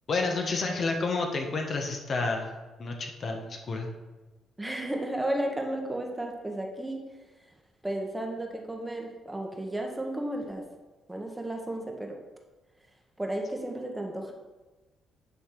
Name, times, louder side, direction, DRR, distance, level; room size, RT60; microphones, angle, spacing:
voice 1, 0.1-2.5 2.8-3.9, left 3 dB, 50° left, 2 dB, 1.3 m, -30 dB
voice 2, 4.6-7.0 7.8-10.6 11.1-12.2 13.2-14.3, right 1 dB, 10° right, 2 dB, 1.3 m, -33 dB
9.3 x 3.4 x 5.9 m, 1.1 s
cardioid pair, 90°, 0 cm